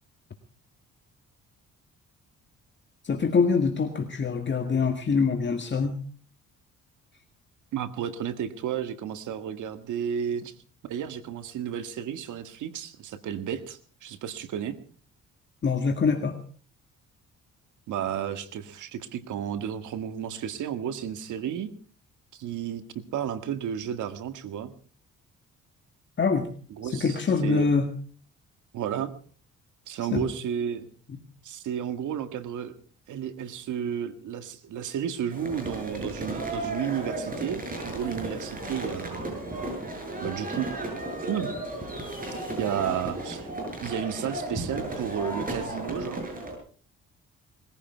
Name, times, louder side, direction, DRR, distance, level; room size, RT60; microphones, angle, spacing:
voice 1, 3.0-6.0 15.6-16.4 26.2-26.5 26.8-27.9 30.1-30.3 31.1-31.2, left 5 dB, 40° left, 4 dB, 2.0 m, -24 dB
voice 2, 7.7-10.5 10.8-14.8 17.9-21.7 22.3-24.7 26.7-27.7 28.7-29.1 29.9-30.9 31.4-32.7 33.1-39.3 40.2-40.7 41.3-41.5 42.6-43.5 43.8-46.2, right 9 dB, 80° right, 10 dB, 1.9 m, -32 dB
sound 1, 35.3-46.5, right 1 dB, 30° right, 7.8 m, -34 dB
21.0 x 15.5 x 4.6 m, 0.43 s
cardioid pair, 90°, 30 cm